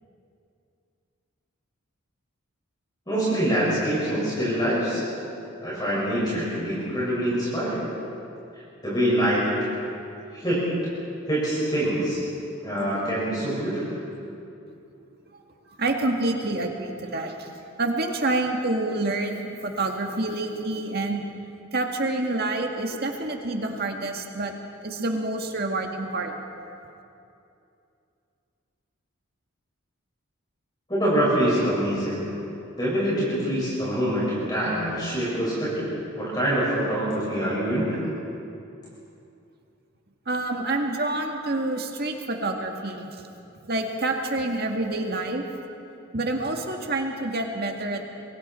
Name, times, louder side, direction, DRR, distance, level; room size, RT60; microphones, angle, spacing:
voice 1, 3.1-5.0 5.6-7.8 8.8-9.7 10.3-10.9 11.3-12.2 12.6-14.0 30.9-32.3 32.8-35.9 36.2-38.0, right 1 dB, 20° left, -9 dB, 5.7 m, -25 dB
voice 2, 15.8-17.3 17.8-21.2 21.7-24.5 24.8-26.4 40.3-43.1 43.6-45.4 46.1-48.1, right 2 dB, 45° right, 3 dB, 1.9 m, -27 dB
27.5 x 22.5 x 4.4 m, 2.7 s
head